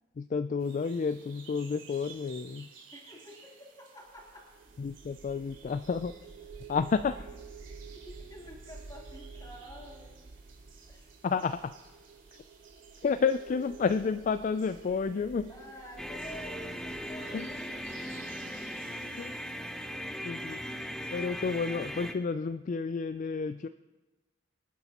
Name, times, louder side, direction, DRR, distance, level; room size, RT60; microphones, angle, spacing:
voice 1, 0.2-2.7 4.8-6.1 6.7-7.2 11.2-11.7 13.0-15.5 17.3-17.5 19.2-19.3 20.2-20.6 21.1-23.7, left 5 dB, 40° left, 11 dB, 0.3 m, -30 dB
sound 1, 0.6-20.0, right 6 dB, 75° right, 2.9 m, -56 dB
voice 2, 2.9-4.5 7.9-10.2 10.9-11.0 15.5-19.2, left 1 dB, 20° left, -4 dB, 3.3 m, -49 dB
sound 2, 4.1-19.2, right 4 dB, 35° right, 0.4 m, -50 dB
sound 3, 16.0-22.1, equal, 5° left, 0.7 m, -39 dB
26.0 x 9.9 x 2.9 m, 1.2 s
head